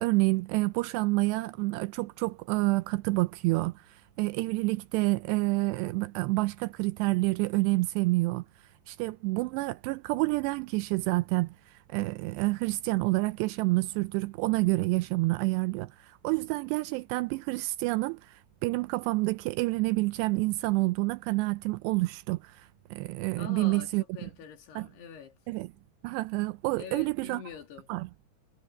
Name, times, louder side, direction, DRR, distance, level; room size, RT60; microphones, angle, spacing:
voice 1, 0.0-8.4 8.9-24.3 24.8-24.9 25.5-25.7 26.0-27.4 27.9-28.1, right 22 dB, 85° right, 2.5 m, -28 dB
voice 2, 23.4-23.9 24.1-25.4 26.8-27.9, left 8 dB, 65° left, 4.6 m, -44 dB
omnidirectional pair, 5.1 m